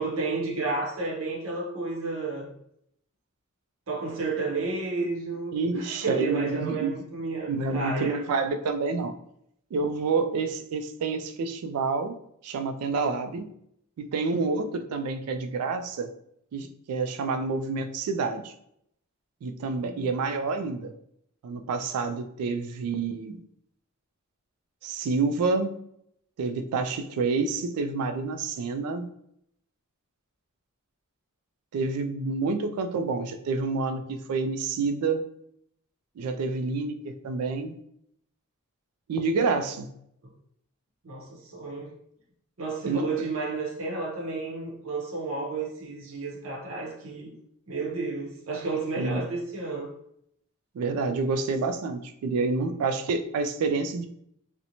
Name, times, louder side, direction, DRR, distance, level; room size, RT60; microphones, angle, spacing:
voice 1, 0.0-2.5 3.9-8.2 19.8-20.1 41.0-41.9 42.6-47.3 47.7-49.9, right 3 dB, 65° right, 0.7 m, -32 dB
voice 2, 5.5-6.9 7.5-9.1 9.7-12.1 12.4-13.5 14.0-16.1 16.5-18.5 19.4-20.9 21.4-23.4 24.8-25.7 26.4-29.1 31.7-35.3 36.2-37.7 39.1-39.9 42.9-43.1 49.0-49.2 50.7-54.1, right 4 dB, 90° right, 0.3 m, -28 dB
2.5 x 2.1 x 2.9 m
head